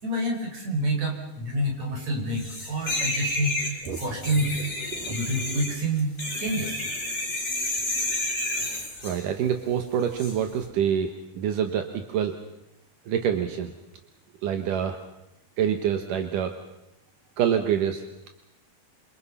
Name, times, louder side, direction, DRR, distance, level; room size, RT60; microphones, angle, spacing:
voice 1, 0.0-3.5 4.0-4.7 5.1-6.8, right 1 dB, 55° right, 1 dB, 6.8 m, -28 dB
sound 1, 2.4-9.3 10.2-10.4, left 1 dB, 20° left, 6.7 m, -30 dB
voice 2, 8.7-12.3 13.1-13.7 14.4-15.0 15.6-16.5 17.4-18.0, right 9 dB, 80° right, 6 dB, 2.8 m, -26 dB
28.0 x 25.5 x 5.6 m, 0.88 s
omnidirectional pair, 3.8 m